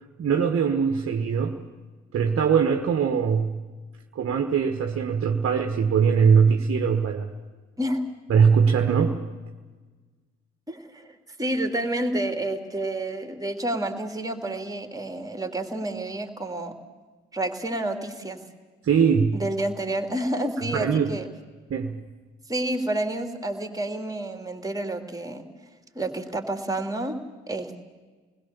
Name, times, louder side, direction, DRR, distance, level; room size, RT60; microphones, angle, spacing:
voice 1, 0.2-1.6 2.1-3.6 4.1-7.3 8.3-9.2 18.8-19.4 20.7-21.1 21.7-22.0, right 6 dB, 45° right, 5 dB, 1.4 m, -21 dB
voice 2, 10.7-16.7 17.3-18.4 19.3-21.3 22.5-25.4 25.9-27.2 27.5-27.8, right 1 dB, 10° right, 5 dB, 3.0 m, -29 dB
28.5 x 20.5 x 7.1 m, 1.4 s
figure-of-eight pair, 45°, 31 cm